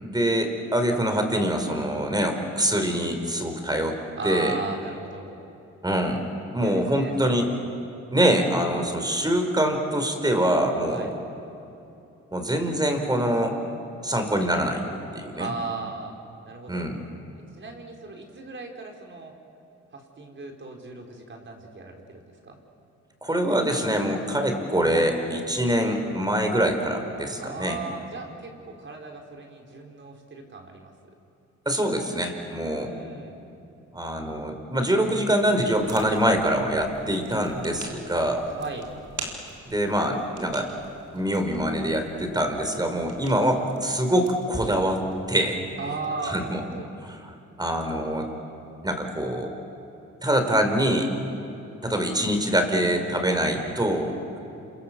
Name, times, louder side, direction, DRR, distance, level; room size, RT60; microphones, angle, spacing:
voice 1, 0.0-4.0 4.2-4.6 5.8-6.2 6.5-7.5 8.1-11.1 12.3-13.5 14.0-14.8 15.1-15.5 16.7-17.0 23.2-27.8 31.6-32.9 33.9-38.5 39.7-40.7 41.1-45.0 45.3-45.6 46.2-46.6 47.0-47.2 47.6-48.3 48.8-49.5 50.2-51.1 51.8-54.2, right 1 dB, 15° right, 5 dB, 4.8 m, -24 dB
voice 2, 4.2-5.4 6.6-7.6 10.9-11.1 15.4-16.1 16.5-16.9 17.5-19.4 19.9-22.6 27.4-30.9 32.7-33.4 38.6-38.9 45.8-46.9 53.3-54.2, right 3 dB, 40° right, 2 dB, 4.9 m, -37 dB
sound 1, 35.6-45.3, right 4 dB, 80° right, 4.9 m, -45 dB
28.5 x 27.0 x 7.7 m, 2.9 s
cardioid pair, 90°, 30 cm